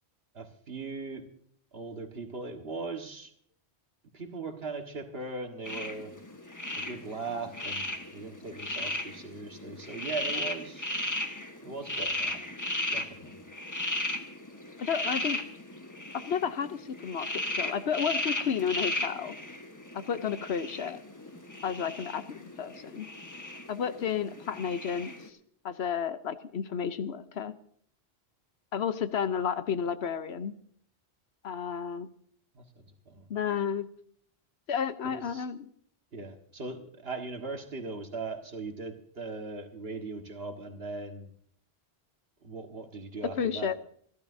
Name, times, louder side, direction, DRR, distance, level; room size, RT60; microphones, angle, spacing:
voice 1, 0.3-1.2 1.7-3.3 4.1-6.1 6.8-10.9 11.6-12.4 12.9-13.4 32.5-32.6 33.1-33.3 35.0-35.5 36.1-41.3 42.4-43.8, right 3 dB, 65° right, 4 dB, 1.8 m, -39 dB
sound 1, 5.6-25.3, left 1 dB, 15° left, 1.3 m, -36 dB
voice 2, 14.8-15.4 16.1-17.3 17.6-19.3 19.9-21.0 21.6-23.1 23.7-25.1 25.6-27.5 28.7-30.5 31.4-32.1 33.3-33.9 34.7-35.6 43.4-43.7, left 7 dB, 75° left, 11 dB, 1.1 m, -31 dB
27.5 x 12.0 x 2.7 m, 0.62 s
omnidirectional pair, 1.1 m